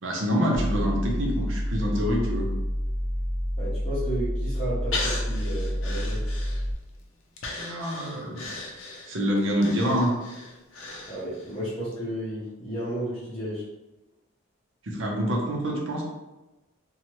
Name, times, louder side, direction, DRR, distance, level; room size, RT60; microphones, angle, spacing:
voice 1, 0.0-2.5 7.6-8.4 9.1-10.1 14.8-16.0, equal, 60° right, -1 dB, 0.7 m, -26 dB
sound 1, 0.5-6.7, equal, 15° right, 0.6 m, -28 dB
voice 2, 3.6-6.2 11.1-13.6, right 1 dB, 25° left, -10 dB, 0.7 m, -33 dB
Breathing, 4.9-6.9 7.4-11.6 11.9-12.0, left 2 dB, 65° left, 0.5 m, -36 dB
2.9 x 2.3 x 2.9 m, 1.0 s
head